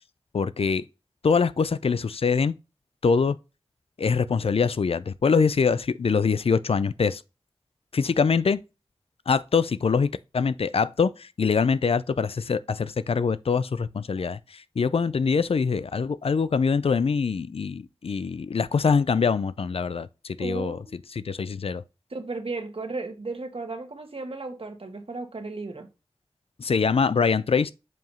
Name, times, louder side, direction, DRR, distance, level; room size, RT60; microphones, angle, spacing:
voice 1, 0.3-0.8 1.2-2.5 3.0-3.4 4.0-7.2 7.9-8.6 9.3-20.8 21.1-21.8 26.6-27.7, left 5 dB, 70° left, 0.4 m, -24 dB
voice 2, 20.4-21.0 22.1-25.9, right 3 dB, 65° right, 1.4 m, -35 dB
7.6 x 2.8 x 5.4 m
cardioid pair, 40°, 10 cm